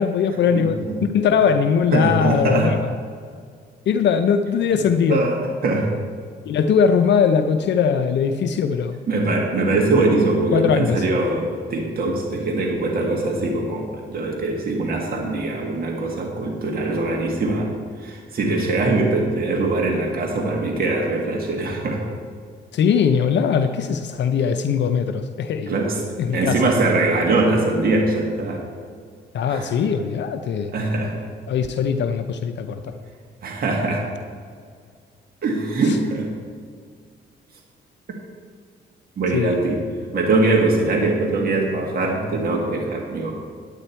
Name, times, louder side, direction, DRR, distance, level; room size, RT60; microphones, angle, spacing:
voice 1, 0.0-2.9 3.9-5.2 6.5-9.0 10.5-11.0 22.7-25.8 26.2-26.6 29.3-30.7 31.5-32.9 35.8-36.0 39.3-39.6, left 6 dB, 65° left, 8 dB, 0.6 m, -20 dB
voice 2, 0.5-1.0 1.9-2.7 5.1-5.4 5.6-5.9 9.1-17.7 18.0-22.0 25.7-26.0 26.3-28.6 29.5-29.7 30.7-31.2 33.4-34.0 35.4-36.3 39.2-39.8 40.1-43.4, right 2 dB, 50° right, -1 dB, 1.7 m, -22 dB
9.8 x 9.0 x 4.4 m, 2.1 s
cardioid pair, 90°, 20 cm